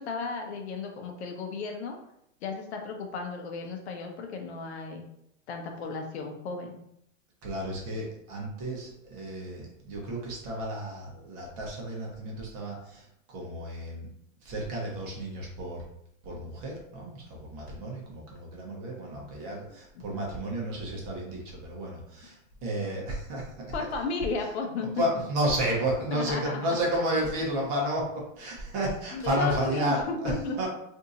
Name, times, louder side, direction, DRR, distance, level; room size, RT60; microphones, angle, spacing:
voice 1, 0.0-2.0 2.4-5.1 5.5-6.8 23.7-24.9 26.1-26.6 29.1-30.7, left 4 dB, 55° left, 3 dB, 0.7 m, -34 dB
voice 2, 7.4-13.1 13.3-14.1 14.4-15.8 16.2-23.7 25.0-30.7, right 1 dB, 30° right, -2 dB, 1.0 m, -32 dB
2.8 x 2.7 x 3.8 m, 0.77 s
supercardioid pair, 165°, 39 cm